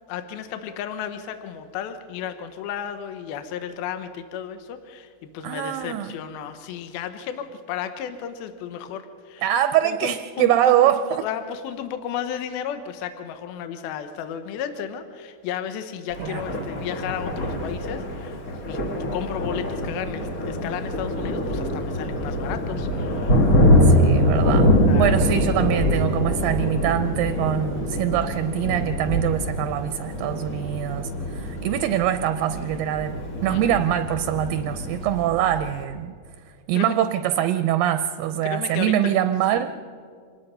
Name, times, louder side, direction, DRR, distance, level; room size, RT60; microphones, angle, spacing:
voice 1, 0.1-9.4 9.8-10.7 11.1-23.3 24.8-25.2 33.5-33.6 36.7-37.0 38.4-39.1 39.5-39.7, left 9 dB, 80° left, 9 dB, 2.7 m, -33 dB
voice 2, 5.4-6.1 9.4-11.2 16.2-16.4 23.8-33.2 33.4-36.2 36.7-39.7, right 11 dB, 80° right, 10 dB, 2.2 m, -23 dB
Thunder, 16.1-35.8, equal, 55° left, 0.9 m, -24 dB
26.0 x 19.5 x 5.5 m, 2.2 s
omnidirectional pair, 4.3 m